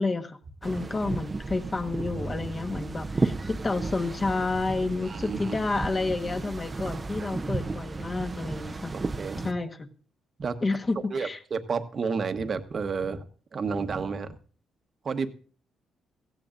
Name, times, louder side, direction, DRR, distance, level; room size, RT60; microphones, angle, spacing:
voice 1, 0.0-9.0 9.4-9.7 10.6-11.4, left 3 dB, 30° left, 6 dB, 1.3 m, -30 dB
sound 1, 0.6-9.5, right 3 dB, 25° right, 0.6 m, -33 dB
voice 2, 5.0-5.7 6.9-7.0 8.9-9.5 10.4-10.6 11.1-13.2 13.5-14.4 15.0-15.3, right 5 dB, 45° right, 9 dB, 1.1 m, -31 dB
17.5 x 15.0 x 2.5 m, 0.42 s
cardioid pair, 90°, 0 cm